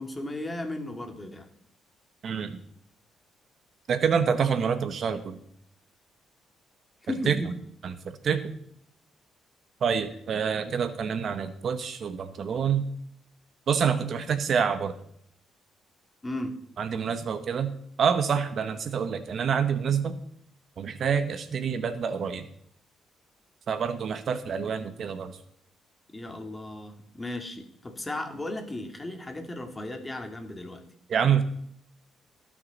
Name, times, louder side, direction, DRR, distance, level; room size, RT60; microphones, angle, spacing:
voice 1, 0.0-1.5 7.0-7.5 16.2-16.6 26.1-30.8, left 1 dB, 20° left, 4 dB, 2.2 m, -35 dB
voice 2, 2.2-2.6 3.9-5.4 7.3-7.4 7.8-8.6 9.8-12.9 13.7-14.9 16.8-17.7 18.0-20.1 20.8-22.4 23.7-25.4 31.1-31.4, right 7 dB, 55° right, 11 dB, 1.0 m, -27 dB
19.0 x 6.3 x 4.1 m, 0.68 s
cardioid pair, 90°, 0 cm